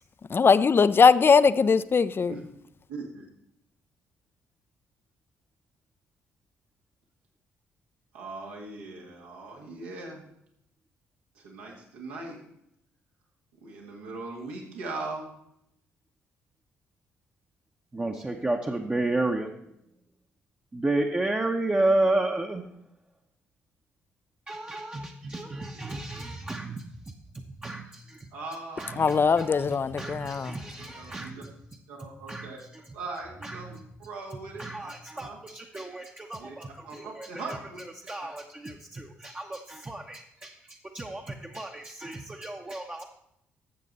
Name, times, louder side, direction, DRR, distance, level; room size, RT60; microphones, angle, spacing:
voice 1, 0.3-2.3 29.0-30.5, left 5 dB, 35° left, 0.5 m, -20 dB
voice 2, 2.9-3.3 8.1-10.2 11.3-12.4 13.6-15.3 25.7-25.9 28.3-29.1 30.9-31.4 31.9-32.6 32.9-33.8 34.1-35.4 36.4-36.6 36.9-37.8, right 3 dB, 80° right, 2.1 m, -40 dB
voice 3, 17.9-19.5 20.7-22.7 24.5-28.3 28.8-31.5 32.3-32.9 33.4-33.9 34.3-43.0, right 2 dB, 20° right, 0.9 m, -32 dB
12.5 x 7.4 x 4.1 m
hypercardioid pair, 45°, 7 cm